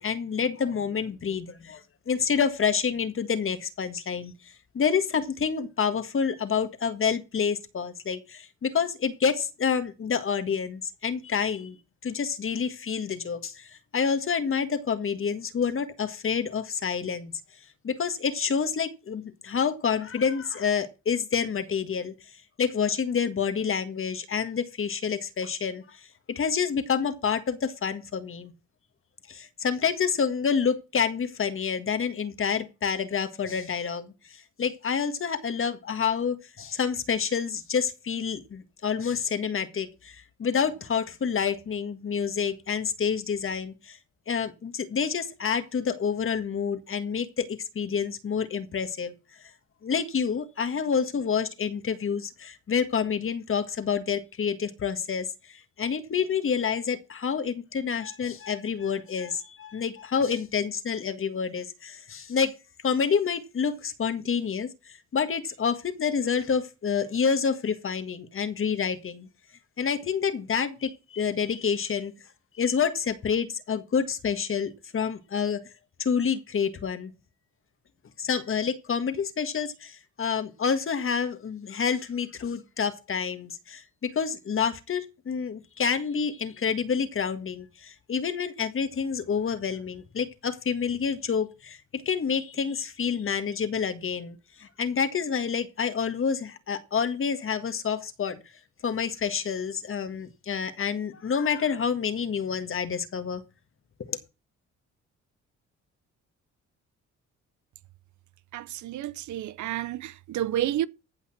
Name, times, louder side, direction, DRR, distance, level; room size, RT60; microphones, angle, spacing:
voice 1, 0.0-4.3 4.7-11.8 12.0-17.3 17.8-22.1 22.6-26.0 26.3-28.5 29.3-44.0 44.3-49.1 49.8-62.5 62.8-64.7 65.1-69.3 69.8-72.1 72.6-75.6 76.0-77.1 78.2-98.4 98.8-103.4 104.1-104.2, left 6 dB, 45° left, 1.7 m, -28 dB
voice 2, 108.5-110.9, right 12 dB, 75° right, 0.7 m, -30 dB
15.5 x 5.7 x 5.9 m
cardioid pair, 90°, 30 cm